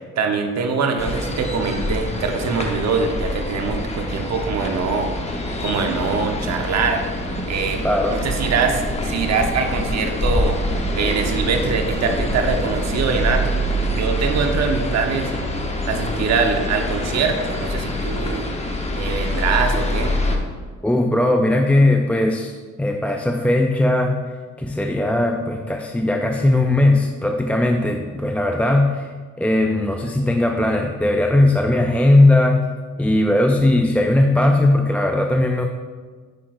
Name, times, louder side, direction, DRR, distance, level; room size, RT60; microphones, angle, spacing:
voice 1, 0.2-5.1 5.6-7.0 7.5-7.8 8.1-10.6 11.0-13.6 13.9-15.3 15.9-18.5 19.0-20.1, right 5 dB, 60° right, 4 dB, 1.0 m, -23 dB
sound 1, 1.0-20.4, equal, 20° left, 1.0 m, -25 dB
voice 2, 7.8-8.2 20.8-24.2 24.6-29.1 29.4-32.7 33.0-35.6, left 1 dB, 5° left, 2 dB, 0.4 m, -18 dB
10.0 x 6.0 x 2.5 m, 1.5 s
cardioid pair, 90°, 30 cm